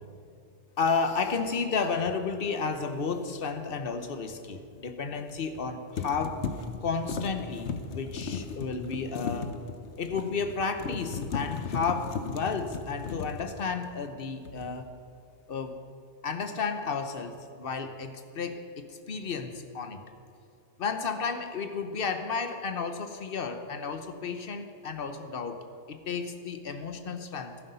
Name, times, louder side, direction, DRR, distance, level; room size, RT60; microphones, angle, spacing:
voice 1, 0.8-6.4 6.8-9.5 10.0-14.9 15.5-15.8 16.2-20.0 20.8-27.6, left 5 dB, 55° left, 8 dB, 1.1 m, -32 dB
sound 1, 2.0-2.2 5.3-5.6 6.0-14.1 14.4-14.9, left 5 dB, 90° left, 1.1 m, -36 dB
14.5 x 11.5 x 5.5 m, 2.6 s
omnidirectional pair, 1.1 m